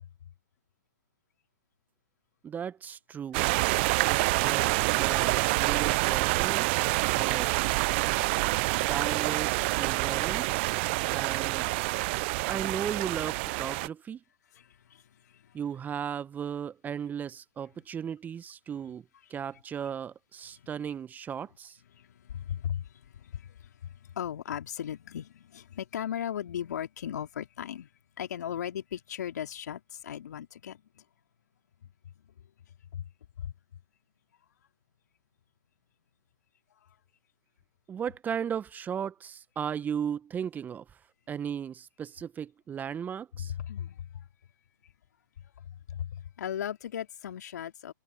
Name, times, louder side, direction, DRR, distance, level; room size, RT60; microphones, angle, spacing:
voice 1, 2.4-3.4 4.1-4.7 5.0-7.5 8.8-10.7 11.1-11.7 12.5-14.2 15.5-19.0 19.3-21.8 37.9-40.8 41.3-43.5, right 8 dB, 15° right, 1.0 m, -36 dB
sound 1, 3.3-13.9, right 26 dB, 35° right, 0.4 m, -27 dB
voice 2, 14.5-15.5 20.6-20.9 21.9-27.9 28.2-31.0 32.9-33.1 33.4-33.5 43.3-44.3 45.6-47.9, left 9 dB, 60° left, 3.1 m, -37 dB
figure-of-eight pair, 115°, 10 cm